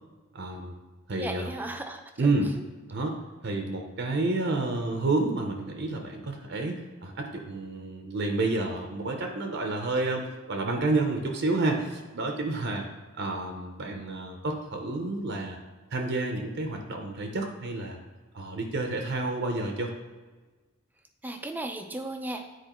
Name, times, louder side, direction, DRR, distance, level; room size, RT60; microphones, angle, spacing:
voice 1, 0.3-0.7 1.1-1.5 2.2-2.5 2.9-3.2 3.4-12.9 13.2-15.6 15.9-18.0 18.3-19.9, right 2 dB, 50° right, 3 dB, 0.7 m, -29 dB
voice 2, 1.2-2.6 21.2-22.5, right 1 dB, 10° right, 6 dB, 0.4 m, -36 dB
9.1 x 4.5 x 3.0 m, 1.3 s
head